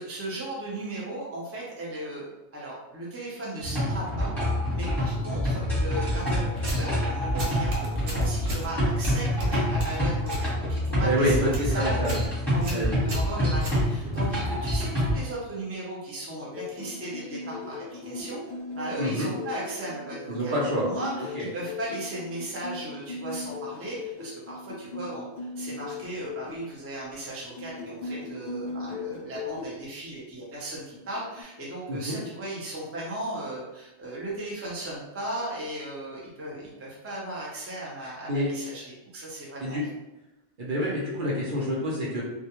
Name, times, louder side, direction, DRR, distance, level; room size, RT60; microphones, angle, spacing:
voice 1, 0.0-4.3 4.7-12.2 12.5-18.4 18.8-20.6 20.8-39.9, right 1 dB, 20° right, -6 dB, 0.4 m, -36 dB
sound 1, 3.6-15.2, equal, ahead, 0.9 m, -27 dB
sound 2, 6.6-7.0 7.4-8.7 9.0-10.5 10.8-11.1 11.4-11.7 12.0-12.3 12.6-14.2, right 1 dB, 90° right, 1.0 m, -34 dB
voice 2, 11.0-12.1 12.7-13.0 19.0-19.3 20.3-20.9 21.3-21.5 31.9-32.2 38.3-38.5 39.6-39.8 40.6-42.2, equal, 55° right, -6 dB, 0.7 m, -27 dB
sound 3, 16.4-26.7 27.5-29.8 30.9-31.4, left 3 dB, 50° left, 0.6 m, -38 dB
2.2 x 2.1 x 2.9 m, 0.97 s
omnidirectional pair, 1.2 m